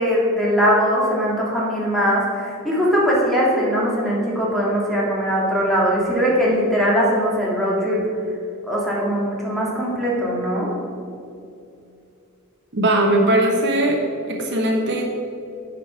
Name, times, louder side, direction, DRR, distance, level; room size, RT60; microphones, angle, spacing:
voice 1, 0.0-8.0 8.7-10.7, equal, ahead, -5 dB, 1.9 m, -20 dB
voice 2, 12.7-14.0 14.2-15.0, right 1 dB, 55° right, 1 dB, 0.9 m, -19 dB
8.9 x 5.2 x 5.7 m, 2.6 s
head